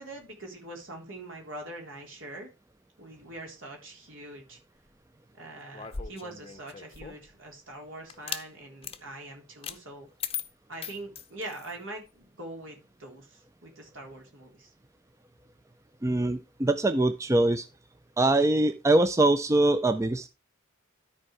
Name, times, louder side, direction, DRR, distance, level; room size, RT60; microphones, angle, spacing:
voice 1, 0.0-2.5 3.0-4.6 5.4-10.1 10.7-14.7, right 2 dB, 70° right, 1 dB, 3.7 m, -43 dB
sound 1, 5.7-7.3 8.1-8.5 8.8-9.0 9.6-9.8 10.2-11.8, left 7 dB, 30° left, 0.7 m, -38 dB
voice 2, 16.0-17.7 18.2-20.3, right 2 dB, 15° right, 10 dB, 0.4 m, -23 dB
12.5 x 4.6 x 4.7 m, 0.28 s
head